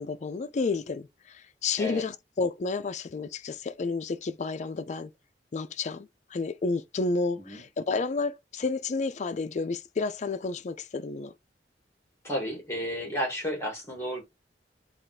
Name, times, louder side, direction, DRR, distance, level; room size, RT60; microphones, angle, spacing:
voice 1, 0.0-5.1 5.5-11.3, left 4 dB, 40° left, 0.4 m, -31 dB
voice 2, 12.2-14.2, equal, 15° left, 1.5 m, -32 dB
3.5 x 2.4 x 3.9 m
head